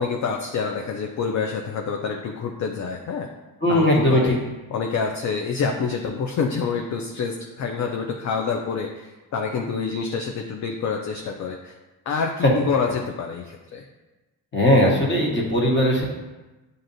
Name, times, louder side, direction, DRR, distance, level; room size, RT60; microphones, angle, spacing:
voice 1, 0.0-3.3 3.7-4.4 4.7-11.8 12.1-13.9, left 5 dB, 40° left, 3 dB, 0.5 m, -27 dB
voice 2, 3.6-4.3 14.5-16.0, left 1 dB, 25° left, -2 dB, 1.3 m, -19 dB
7.5 x 2.6 x 2.6 m, 1.1 s
supercardioid pair, 75°, 45 cm